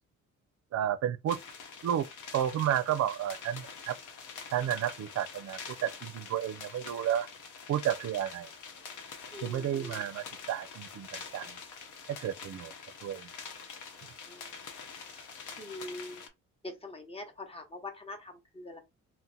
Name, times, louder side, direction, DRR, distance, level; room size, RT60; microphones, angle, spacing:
voice 1, 0.7-1.4 1.8-2.1 2.3-4.0 4.5-7.3 7.7-8.5 9.4-11.6 12.1-12.7 13.0-13.3, right 10 dB, 60° right, 0.5 m, -32 dB
sound 1, 1.3-16.3, left 5 dB, 80° left, 0.8 m, -46 dB
voice 2, 9.3-10.0 14.3-14.5 15.1-15.3 15.6-16.2 16.6-18.8, left 2 dB, 20° left, 0.9 m, -43 dB
2.8 x 2.1 x 3.7 m
cardioid pair, 90°, 30 cm